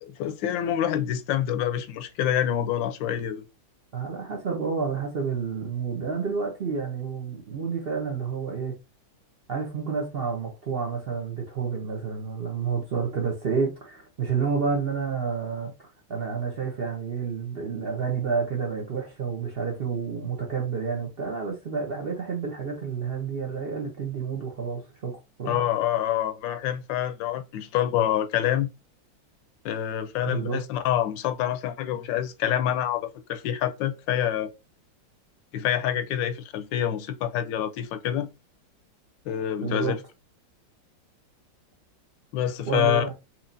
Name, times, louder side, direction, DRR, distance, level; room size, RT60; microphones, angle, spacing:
voice 1, 0.0-3.4 25.5-28.7 29.6-33.0 33.3-34.5 35.5-38.3 39.3-40.0 42.3-43.0, left 10 dB, 80° left, 1.2 m, -26 dB
voice 2, 3.9-8.7 9.5-15.7 16.1-25.6 30.3-30.6 39.6-39.9 42.7-43.1, right 5 dB, 65° right, 0.5 m, -29 dB
4.4 x 2.7 x 2.6 m
omnidirectional pair, 2.1 m